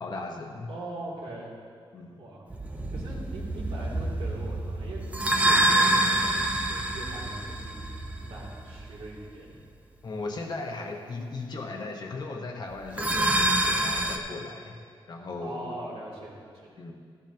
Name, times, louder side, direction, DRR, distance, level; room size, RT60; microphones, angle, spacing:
voice 1, 0.0-0.7 1.9-2.2 10.0-14.8 15.1-15.7 16.8-17.0, left 3 dB, 50° left, 1 dB, 1.1 m, -37 dB
voice 2, 0.7-1.5 2.2-2.4 2.9-9.6 15.4-16.8, right 2 dB, 90° right, -5 dB, 2.8 m, -41 dB
sound 1, 2.5-9.1 12.8-14.2, right 1 dB, 15° right, 0.6 m, -27 dB
14.0 x 12.0 x 2.9 m, 2.1 s
wide cardioid pair, 165°, 10 cm